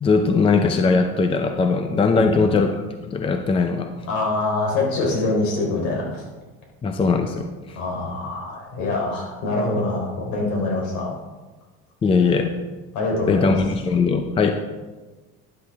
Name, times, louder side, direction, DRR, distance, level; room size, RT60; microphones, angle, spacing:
voice 1, 0.0-2.7 3.1-4.1 6.8-7.8 12.0-12.5 13.3-14.5, left 4 dB, 20° left, 6 dB, 0.6 m, -20 dB
voice 2, 2.1-2.5 4.1-6.3 7.8-11.1 12.9-13.6, left 2 dB, 65° left, -1 dB, 3.9 m, -24 dB
12.5 x 10.5 x 3.6 m, 1.3 s
cardioid pair, 150°, 30 cm